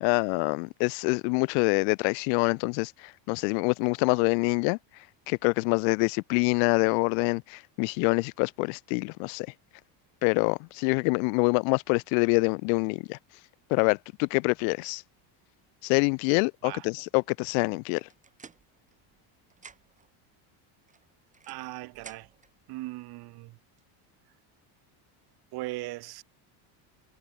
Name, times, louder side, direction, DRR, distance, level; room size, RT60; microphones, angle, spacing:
voice 1, 0.0-2.9 3.3-4.8 5.3-9.5 10.2-13.2 13.7-15.0 15.8-18.1, left 40 dB or more, 75° left, 1.3 m, -25 dB
sound 1, 17.9-19.2 19.5-20.1 20.9-22.5, right 5 dB, 15° right, 2.6 m, -52 dB
voice 2, 21.5-22.3 22.7-23.6 25.5-26.2, right 20 dB, 50° right, 1.7 m, -38 dB
cardioid pair, 165°, 50 cm